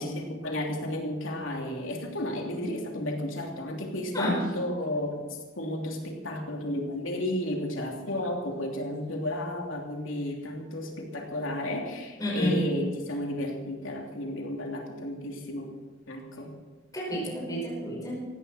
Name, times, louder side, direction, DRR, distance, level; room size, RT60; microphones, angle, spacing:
voice 1, 0.0-5.2 5.5-15.7 16.1-16.5, left 1 dB, 80° left, 0 dB, 3.2 m, -33 dB
voice 2, 12.2-12.6 16.9-18.2, equal, 20° left, -5 dB, 5.3 m, -29 dB
18.0 x 15.5 x 4.4 m, 1.3 s
head